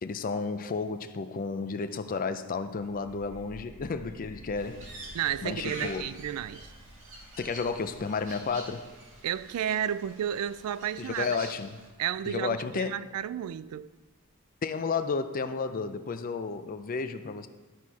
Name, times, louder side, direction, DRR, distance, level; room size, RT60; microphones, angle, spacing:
voice 1, 0.0-4.8 5.4-6.1 7.4-8.9 11.0-11.8 12.3-13.0 14.6-17.5, left 4 dB, 40° left, 0.4 m, -32 dB
sound 1, 2.6-14.1, equal, 70° left, 1.6 m, -53 dB
Crow, 4.6-11.9, right 1 dB, 60° right, 1.8 m, -47 dB
voice 2, 5.1-6.7 9.2-11.4 12.0-13.9, right 10 dB, 75° right, 0.3 m, -32 dB
12.5 x 4.3 x 4.6 m
head